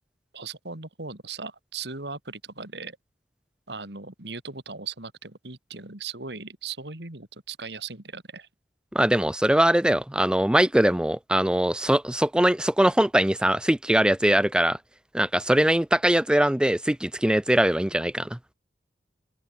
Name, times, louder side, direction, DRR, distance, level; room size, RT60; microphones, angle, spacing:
voice 1, 0.3-3.0 3.7-8.5, right 5 dB, 65° right, 3.3 m, -38 dB
voice 2, 8.9-14.8 15.1-18.4, right 1 dB, 5° right, 0.5 m, -21 dB
open air
head